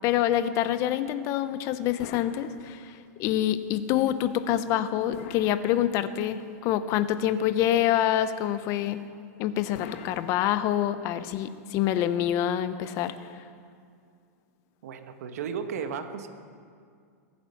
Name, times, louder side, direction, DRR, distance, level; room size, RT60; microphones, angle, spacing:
voice 1, 0.0-9.0 9.4-13.3, left 11 dB, 40° left, 13 dB, 0.7 m, -26 dB
sound 1, 2.0-3.2 5.1-6.4 9.7-11.0, left 7 dB, 60° left, 1.3 m, -45 dB
voice 2, 14.8-16.3, right 6 dB, 75° right, 8 dB, 1.4 m, -34 dB
21.5 x 8.7 x 5.8 m, 2.2 s
supercardioid pair, 145°, 8 cm